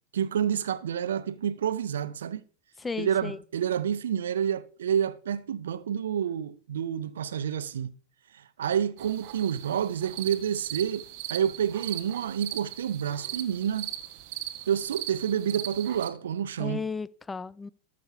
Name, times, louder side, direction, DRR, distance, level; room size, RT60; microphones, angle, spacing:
voice 1, 0.1-2.4 3.0-7.9 8.3-11.0 11.3-13.9 14.7-16.8, right 8 dB, 65° right, 0.7 m, -29 dB
voice 2, 2.8-3.4 16.6-17.7, left 4 dB, 15° left, 0.4 m, -34 dB
sound 1, 9.0-16.1, right 14 dB, 45° right, 1.1 m, -39 dB
13.5 x 6.6 x 5.7 m
figure-of-eight pair, 90°, 0 cm